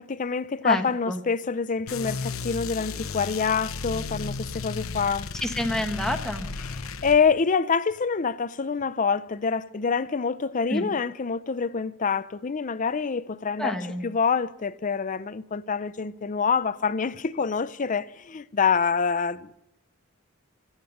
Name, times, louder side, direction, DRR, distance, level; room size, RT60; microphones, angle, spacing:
voice 1, 0.0-5.3 6.6-13.8 14.0-19.5, left 5 dB, 40° left, 0.5 m, -26 dB
voice 2, 0.6-1.2 5.4-6.5 10.7-10.9 13.6-14.0, left 1 dB, 5° left, 1.2 m, -28 dB
sound 1, 1.9-7.2, left 4 dB, 80° left, 0.8 m, -34 dB
25.0 x 8.9 x 6.5 m
head